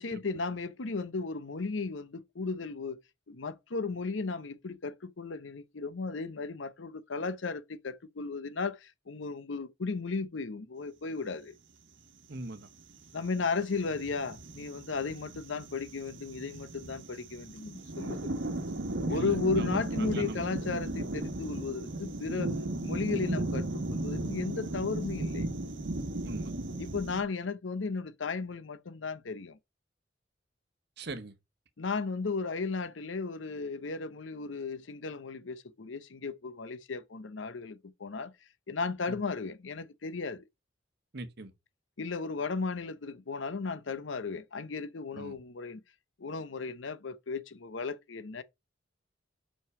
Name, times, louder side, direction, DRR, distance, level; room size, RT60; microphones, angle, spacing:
voice 1, 0.0-3.0 3.3-11.5 13.1-18.3 19.0-22.5 22.8-25.5 26.8-29.6 31.8-38.3 38.7-40.4 42.0-45.8 46.2-48.4, left 4 dB, 80° left, 0.7 m, -35 dB
voice 2, 12.3-12.7 19.1-20.5 26.2-26.5 31.0-31.3 39.1-39.2 41.1-41.5 45.1-45.4, right 2 dB, 60° right, 1.0 m, -41 dB
sound 1, 13.1-27.2, right 2 dB, 80° right, 1.2 m, -36 dB
5.5 x 5.5 x 4.7 m
head